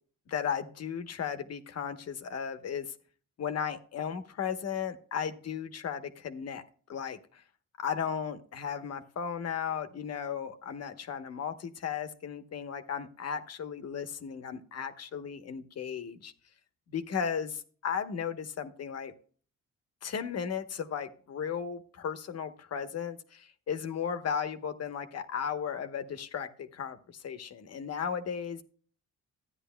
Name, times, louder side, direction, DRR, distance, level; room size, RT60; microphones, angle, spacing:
voice 1, 0.3-2.9 3.4-6.6 6.9-7.4 7.8-16.3 16.9-19.1 20.0-28.6, left 7 dB, 55° left, 1.1 m, -35 dB
13.5 x 9.7 x 2.2 m
cardioid pair, 90°, 30 cm